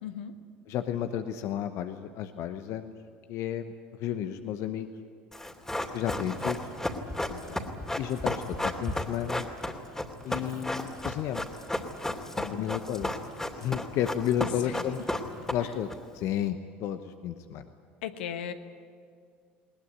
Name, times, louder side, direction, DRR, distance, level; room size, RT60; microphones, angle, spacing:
voice 1, 0.0-0.4 7.3-7.7 12.4-12.7 14.6-14.9 15.6-15.7 18.0-18.5, left 9 dB, 75° left, 8 dB, 1.3 m, -38 dB
voice 2, 0.7-2.9 3.3-3.7 4.0-4.9 5.9-6.7 8.0-9.5 10.2-11.5 12.5-13.1 13.6-15.0 15.5-15.9 16.1-17.7, left 10 dB, 55° left, 9 dB, 1.0 m, -32 dB
Run, 5.3-15.9 16.2-16.3, left 1 dB, 10° left, 2.6 m, -33 dB
20.5 x 19.5 x 9.5 m, 2.1 s
hypercardioid pair, 65°, 6 cm